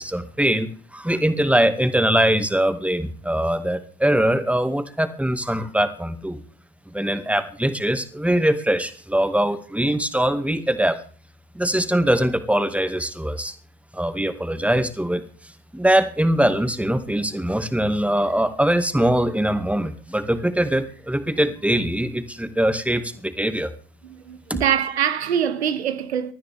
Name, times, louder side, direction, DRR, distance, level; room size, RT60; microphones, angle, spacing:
voice 1, 0.0-6.4 6.9-11.0 11.5-13.5 13.9-15.2 15.7-23.7 24.5-24.6, right 1 dB, 5° right, 2.1 m, -22 dB
voice 2, 24.0-26.3, right 8 dB, 80° right, 1.1 m, -24 dB
24.0 x 14.0 x 3.6 m
figure-of-eight pair, 50°, 32 cm